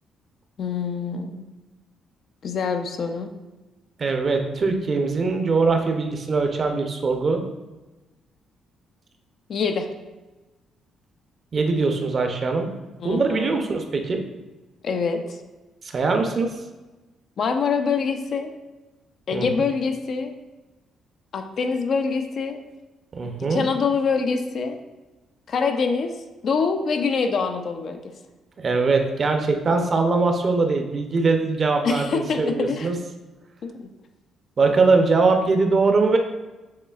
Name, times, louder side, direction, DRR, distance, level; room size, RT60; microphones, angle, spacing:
voice 1, 0.6-1.4 2.4-3.3 9.5-9.9 13.0-13.7 14.8-15.4 17.4-18.5 19.3-20.3 21.3-22.6 23.4-24.8 25.5-26.1 26.4-28.0 31.8-32.9 33.6-33.9 34.7-34.8, left 5 dB, 60° left, 6 dB, 0.5 m, -25 dB
voice 2, 4.0-7.4 11.5-12.7 13.0-14.2 15.9-16.5 19.3-19.5 23.1-23.6 28.6-32.9 34.6-36.2, right 3 dB, 40° right, 4 dB, 0.6 m, -21 dB
6.5 x 3.1 x 2.4 m, 1.1 s
cardioid pair, 85°, 0 cm